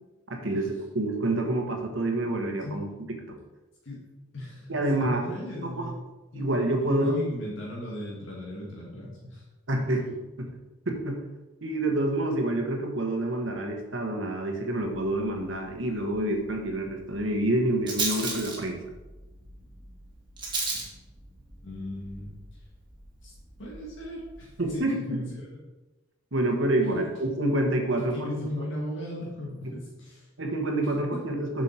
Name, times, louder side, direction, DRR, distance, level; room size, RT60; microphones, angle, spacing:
voice 1, 0.3-3.4 4.7-5.2 5.6-5.8 6.3-7.2 9.7-10.0 10.4-10.5 10.8-11.2 11.6-18.8 24.6-25.2 26.3-28.7 30.4-31.6, right 1 dB, 70° right, 3 dB, 1.3 m, -28 dB
voice 2, 4.3-6.0 6.3-6.5 6.8-9.5 9.7-9.9 20.7-20.8 21.6-22.6 23.2-23.3 23.6-25.6 28.0-30.3 31.0-31.2, left 1 dB, 65° left, -3 dB, 1.8 m, -37 dB
Rattle, 14.8-24.8, right 3 dB, 20° right, 1.7 m, -38 dB
7.5 x 6.4 x 4.4 m, 1.1 s
head